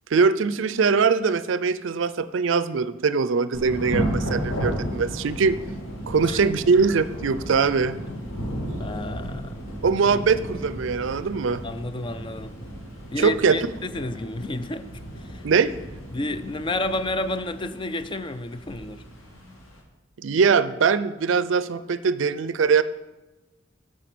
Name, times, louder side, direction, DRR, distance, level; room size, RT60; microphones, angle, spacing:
voice 1, 0.1-5.6 6.1-8.0 9.8-11.6 13.2-13.6 15.4-15.7 20.2-22.8, right 5 dB, 65° right, 14 dB, 0.4 m, -22 dB
Thunder / Rain, 3.5-19.8, equal, 85° left, 2.8 m, -34 dB
voice 2, 8.8-9.6 11.6-12.6 13.1-14.9 15.2-15.4 16.1-19.0, left 1 dB, 25° left, 11 dB, 0.4 m, -31 dB
9.2 x 6.3 x 6.0 m, 1.1 s
head